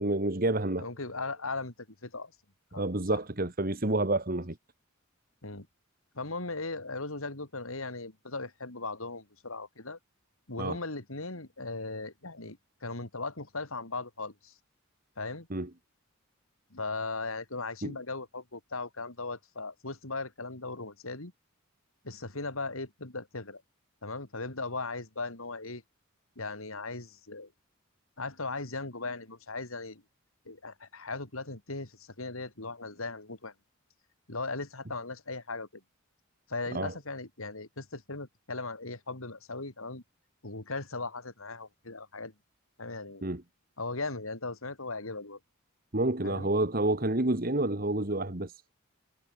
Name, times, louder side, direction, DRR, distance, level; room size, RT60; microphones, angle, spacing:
voice 1, 0.0-0.9 2.8-4.6 10.6-10.8 15.5-15.7 17.8-17.9 36.7-36.9 43.2-43.4 45.9-48.7, right 2 dB, 45° right, 1.9 m, -29 dB
voice 2, 0.8-1.7 2.0-2.3 2.7-3.2 5.4-5.7 6.1-10.0 10.5-14.5 15.2-15.5 16.7-21.3 22.0-23.6 24.0-25.8 26.4-27.5 28.2-30.0 30.5-33.5 34.3-35.8 36.5-40.0 40.4-42.3 42.8-43.2 43.8-45.4 46.2-46.5, left 3 dB, 90° left, 3.8 m, -38 dB
head